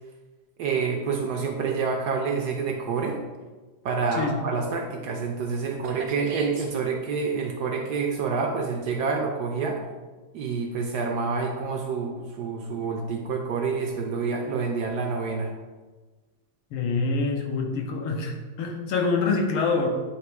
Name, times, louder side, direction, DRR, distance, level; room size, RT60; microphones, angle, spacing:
voice 1, 0.6-3.2 3.8-9.8 10.3-15.5, right 5 dB, 75° right, 2 dB, 0.9 m, -28 dB
voice 2, 16.7-19.9, left 4 dB, 90° left, 1 dB, 1.8 m, -26 dB
8.7 x 3.0 x 4.6 m, 1.3 s
omnidirectional pair, 2.3 m